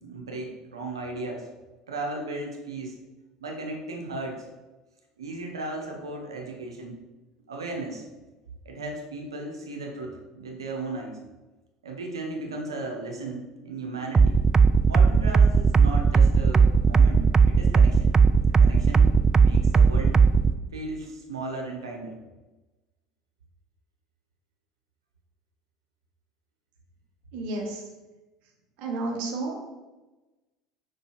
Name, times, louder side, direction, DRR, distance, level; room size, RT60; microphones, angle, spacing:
voice 1, 0.0-1.5 1.9-2.9 3.4-4.5 5.2-7.0 7.5-8.0 8.6-11.2 11.8-14.4 14.9-18.2 18.6-20.2 20.7-22.1, right 2 dB, 85° right, 1 dB, 1.2 m, -36 dB
sound 1, 14.1-20.5, right 5 dB, 25° right, 0.3 m, -17 dB
voice 2, 27.3-27.8 28.8-29.6, right 2 dB, 60° right, 1 dB, 1.6 m, -31 dB
5.4 x 5.3 x 4.5 m, 1.1 s
hypercardioid pair, 70°, 2 cm